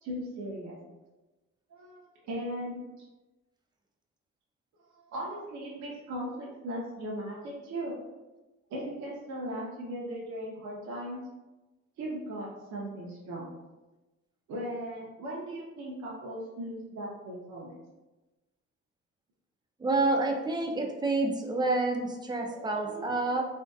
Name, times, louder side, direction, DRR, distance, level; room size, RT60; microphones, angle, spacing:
voice 1, 0.0-0.8 1.7-3.1 4.9-8.0 8.7-11.2 12.0-13.5 14.5-17.8 22.4-23.1, right 1 dB, 70° right, -4 dB, 0.6 m, -38 dB
voice 2, 19.8-23.4, right 2 dB, 15° right, 1 dB, 0.3 m, -28 dB
2.6 x 2.1 x 2.3 m, 1.1 s
cardioid pair, 90°, 30 cm